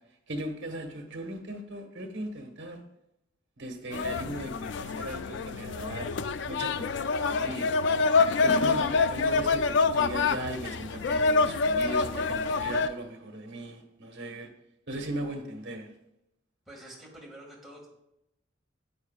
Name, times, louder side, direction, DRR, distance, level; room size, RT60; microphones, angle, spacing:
voice 1, 0.3-2.8 3.6-6.1 6.5-7.7 8.4-14.5 14.9-15.9, right 1 dB, 60° right, 4 dB, 1.4 m, -38 dB
sound 1, 3.9-12.9, left 4 dB, 65° left, 0.4 m, -26 dB
voice 2, 16.7-17.9, right 1 dB, ahead, -4 dB, 2.0 m, -47 dB
9.5 x 8.8 x 2.4 m, 0.85 s
head